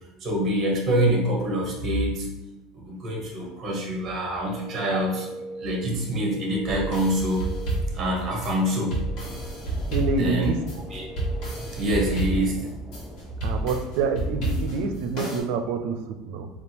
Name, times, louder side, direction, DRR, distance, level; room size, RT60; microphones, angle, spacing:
voice 1, 0.2-2.3 2.7-5.3 5.6-7.5 7.9-9.0 10.2-10.5 10.9-11.0 11.7-12.7, equal, 25° right, -1 dB, 0.9 m, -25 dB
sound 1, 4.2-12.1, right 1 dB, 70° left, 0.4 m, -41 dB
sound 2, 6.7-15.4, right 1 dB, 45° left, 1.3 m, -30 dB
sound 3, 9.2-14.9, equal, ahead, 0.4 m, -41 dB
voice 2, 9.9-10.6 13.4-16.5, right 4 dB, 65° right, 7 dB, 0.4 m, -27 dB
3.5 x 2.3 x 4.3 m, 1.0 s
cardioid pair, 170°, 0 cm